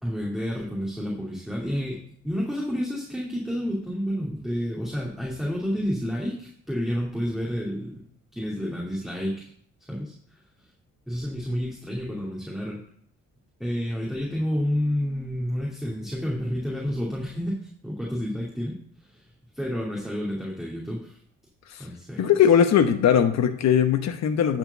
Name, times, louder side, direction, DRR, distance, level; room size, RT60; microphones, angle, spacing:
voice 1, 0.0-8.0 8.3-9.5 9.9-10.4 11.1-12.8 13.6-19.3 19.5-21.2 21.8-22.3, equal, ahead, -4 dB, 2.6 m, -30 dB
voice 2, 22.2-24.6, left 8 dB, 60° left, 6 dB, 1.0 m, -20 dB
10.0 x 4.6 x 6.8 m, 0.62 s
cardioid pair, 90°, 30 cm